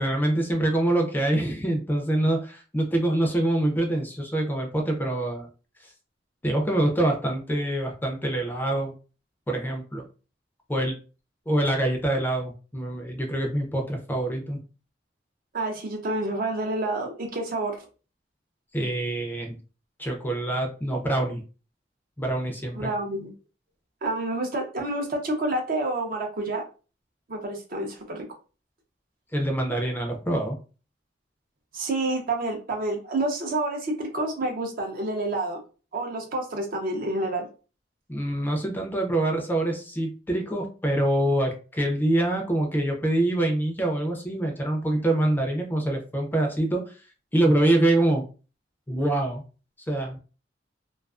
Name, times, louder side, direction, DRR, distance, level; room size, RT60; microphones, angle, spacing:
voice 1, 0.0-5.5 6.4-8.9 9.5-10.0 10.7-10.9 11.5-14.6 18.7-19.6 20.0-21.4 22.2-22.9 29.3-30.6 38.1-46.8 47.3-48.2 48.9-49.4 49.9-50.2, right 1 dB, 10° left, 2 dB, 0.4 m, -25 dB
voice 2, 15.5-17.8 22.7-23.3 24.0-26.6 27.3-28.2 31.7-35.6 35.9-37.5, right 2 dB, 55° right, 3 dB, 0.5 m, -28 dB
2.3 x 2.3 x 2.3 m, 0.35 s
head